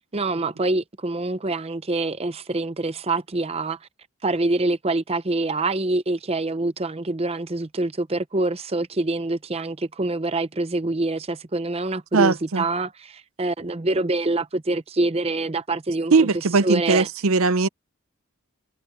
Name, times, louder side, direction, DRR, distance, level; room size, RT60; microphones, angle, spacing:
voice 1, 0.1-3.8 4.2-16.3 16.6-17.1, right 2 dB, 30° right, 0.7 m, -25 dB
voice 2, 12.1-12.6 16.1-17.7, right 4 dB, 70° right, 0.6 m, -19 dB
head